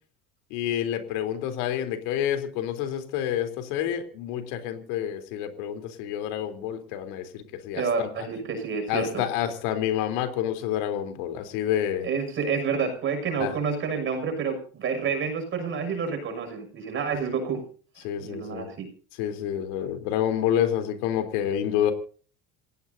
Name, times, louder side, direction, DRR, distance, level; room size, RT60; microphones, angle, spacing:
voice 1, 0.5-8.3 8.9-12.1 13.4-13.5 18.0-18.7 19.2-21.9, left 10 dB, 85° left, 7 dB, 3.7 m, -28 dB
voice 2, 7.7-9.2 12.0-17.6 18.2-18.9, right 5 dB, 35° right, 7 dB, 6.5 m, -29 dB
28.5 x 17.0 x 2.8 m, 0.42 s
cardioid pair, 150°, 34 cm